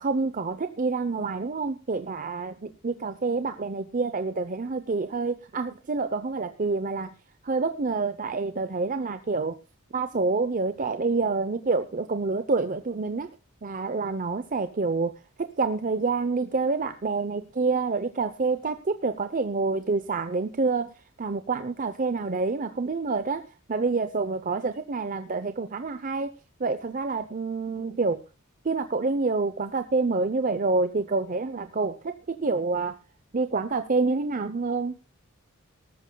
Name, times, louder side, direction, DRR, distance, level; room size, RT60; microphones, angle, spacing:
voice 1, 0.0-2.5 2.8-7.1 7.4-9.6 9.9-13.3 13.6-15.1 15.4-20.9 21.2-23.4 23.7-26.3 26.6-28.2 28.6-32.9 33.3-34.9, right 4 dB, 40° right, 9 dB, 0.7 m, -27 dB
19.0 x 13.5 x 2.2 m, 0.29 s
head